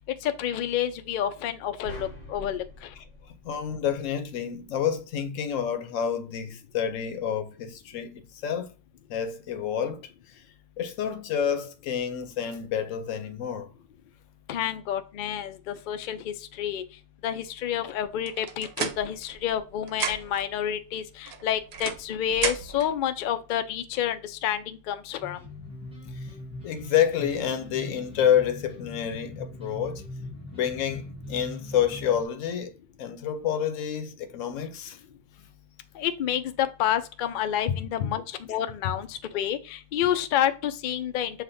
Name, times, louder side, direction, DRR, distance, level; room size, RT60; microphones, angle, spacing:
voice 1, 0.2-2.6 14.5-16.8 17.2-25.4 36.0-41.4, left 10 dB, 65° left, 0.5 m, -29 dB
sound 1, 1.8-4.2, right 1 dB, 45° left, 1.2 m, -45 dB
voice 2, 3.4-8.7 9.1-10.1 10.8-13.7 26.6-30.0 30.5-32.7 33.0-35.0 37.7-38.1, left 9 dB, 85° left, 1.0 m, -28 dB
sound 2, 18.3-19.6 19.9-20.5 21.3-22.9, right 6 dB, 60° right, 0.8 m, -33 dB
sound 3, 25.2-32.2, left 1 dB, 5° right, 0.9 m, -41 dB
7.2 x 2.4 x 2.6 m
omnidirectional pair, 1.3 m